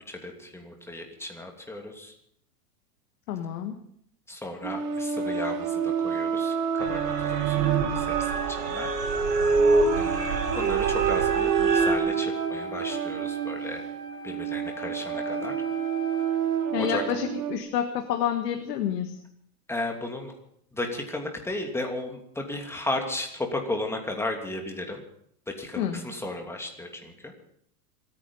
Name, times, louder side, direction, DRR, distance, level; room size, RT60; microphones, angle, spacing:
voice 1, 0.1-2.1 4.3-8.9 9.9-13.8 14.2-15.5 16.7-17.0 19.7-20.3 20.7-25.0 25.5-27.3, left 2 dB, 5° left, 3 dB, 2.8 m, -35 dB
voice 2, 3.3-3.8 16.7-19.2 25.8-26.0, left 9 dB, 75° left, 6 dB, 1.7 m, -28 dB
sound 1, 4.6-17.6, right 9 dB, 40° right, 2.1 m, -29 dB
sound 2, 6.8-11.9, right 3 dB, 85° right, 3.4 m, -25 dB
Wind instrument woodwind instrument, 9.9-16.8, left 1 dB, 15° right, 3.9 m, -39 dB
26.0 x 9.9 x 5.6 m, 0.68 s
supercardioid pair, 125°, 48 cm